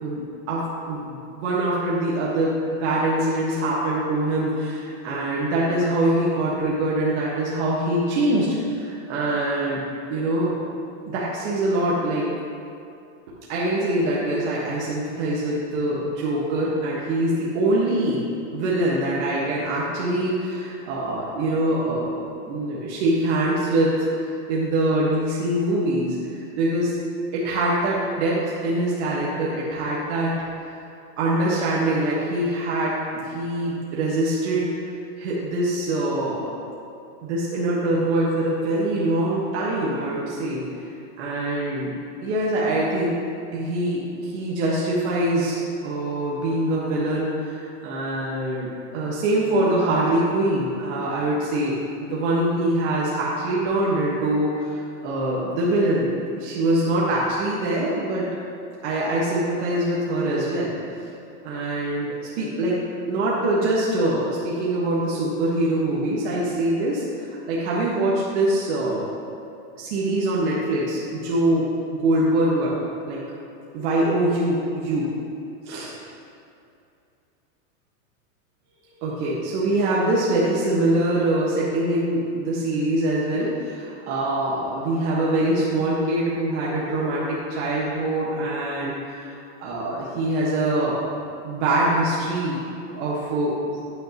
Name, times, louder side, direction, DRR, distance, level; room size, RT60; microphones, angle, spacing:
voice 1, 0.0-10.6 11.1-12.3 13.5-26.9 27.3-30.4 31.2-34.7 35.2-36.5 37.2-40.6 41.2-41.9 42.2-43.2 43.5-51.8 52.1-56.1 56.4-58.3 58.8-61.1 61.4-69.1 69.8-72.8 73.1-73.2 73.7-75.1 75.6-75.9 79.0-91.1 91.4-93.8, right 1 dB, 55° right, -6 dB, 1.5 m, -24 dB
9.3 x 8.9 x 3.0 m, 2.6 s
supercardioid pair, 165°, 42 cm